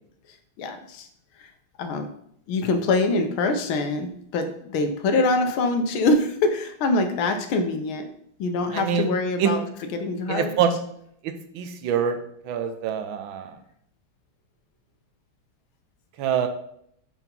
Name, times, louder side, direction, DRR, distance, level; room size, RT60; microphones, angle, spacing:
voice 1, 0.6-1.1 1.4-1.5 1.8-2.1 2.5-8.1 8.4-9.6 9.9-10.6, left 2 dB, 75° left, 6 dB, 1.6 m, -24 dB
voice 2, 8.7-9.1 9.4-9.5 10.3-10.8 11.2-12.2 12.4-13.6 16.2-16.5, right 8 dB, 75° right, 8 dB, 1.4 m, -25 dB
5.4 x 4.6 x 5.3 m, 0.70 s
omnidirectional pair, 2.3 m